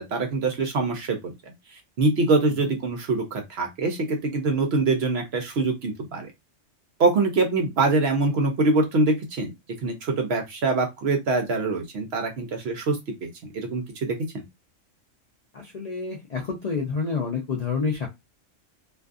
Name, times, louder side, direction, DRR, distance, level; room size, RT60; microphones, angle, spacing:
voice 1, 0.0-1.3 2.0-6.3 7.0-9.5 9.8-13.3 13.5-14.4, right 3 dB, 60° right, 0.7 m, -24 dB
voice 2, 15.5-18.1, left 5 dB, 65° left, 0.4 m, -28 dB
2.5 x 2.4 x 2.4 m
omnidirectional pair, 1.4 m